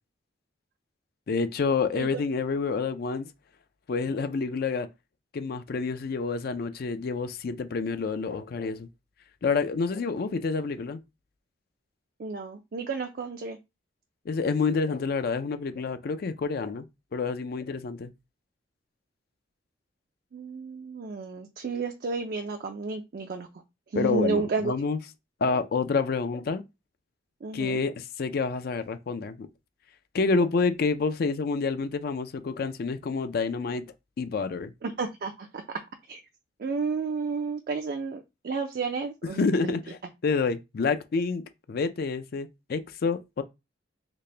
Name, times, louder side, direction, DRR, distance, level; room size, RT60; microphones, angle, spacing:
voice 1, 1.3-3.3 3.9-4.9 5.3-8.9 9.4-11.0 14.3-16.9 17.1-18.1 24.0-25.0 25.4-26.6 27.5-29.5 30.1-33.8 34.2-34.7 39.4-40.0 40.2-41.4 41.7-43.4, left 4 dB, 55° left, 0.4 m, -28 dB
voice 2, 12.2-13.6 20.3-23.5 23.9-24.7 27.4-27.8 34.8-35.8 36.1-36.2 36.6-39.7, right 4 dB, 50° right, 0.4 m, -32 dB
4.0 x 2.1 x 3.2 m
head